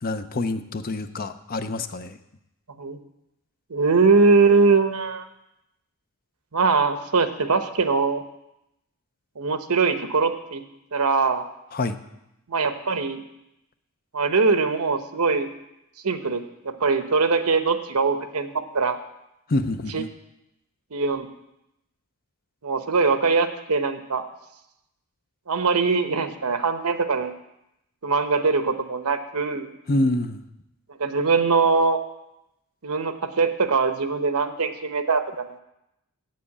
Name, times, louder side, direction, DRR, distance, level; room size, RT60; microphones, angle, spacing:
voice 1, 0.0-2.2 11.7-12.0 19.5-20.1 29.9-30.4, left 2 dB, 40° left, 10 dB, 0.6 m, -26 dB
voice 2, 3.7-5.3 6.5-8.2 9.4-10.6 10.9-11.5 12.5-13.2 14.1-15.5 16.0-18.5 18.7-19.0 19.9-20.0 20.9-21.3 22.6-24.3 25.5-27.3 28.0-29.7 31.0-32.0 32.8-35.6, right 4 dB, 85° right, 8 dB, 0.9 m, -22 dB
7.9 x 7.6 x 8.5 m, 0.87 s
head